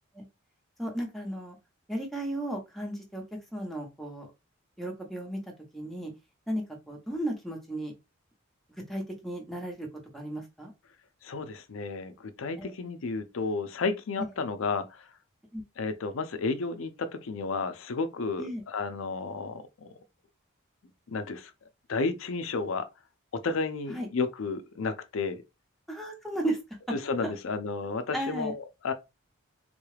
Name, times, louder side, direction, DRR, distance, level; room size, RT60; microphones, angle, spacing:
voice 1, 0.8-1.6 1.9-3.2 3.5-4.3 4.8-5.4 5.7-6.1 6.5-7.9 8.9-9.9 10.1-10.7 12.6-12.7 15.5-15.6 18.4-18.6 23.9-24.1 25.9-26.6 26.9-27.0 27.2-27.3 28.1-28.6, right 1 dB, ahead, 0.9 m, -34 dB
voice 2, 11.2-15.1 15.8-19.9 21.1-21.5 21.9-22.9 23.3-25.4 26.9-28.9, left 4 dB, 75° left, 0.5 m, -32 dB
3.6 x 2.3 x 3.2 m
head